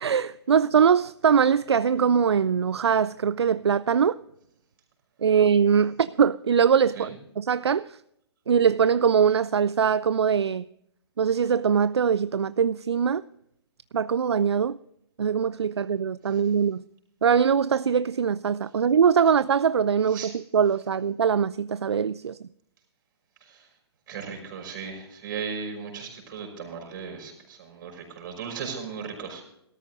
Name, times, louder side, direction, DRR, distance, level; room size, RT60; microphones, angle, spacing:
voice 1, 0.0-4.2 5.2-8.0 8.5-10.7 11.2-13.2 13.9-14.8 15.2-16.8 17.2-22.4, right 7 dB, 75° right, 0.4 m, -22 dB
voice 2, 24.1-29.4, right 6 dB, 45° right, 5.7 m, -36 dB
19.5 x 13.5 x 2.6 m
figure-of-eight pair, 125°, 14 cm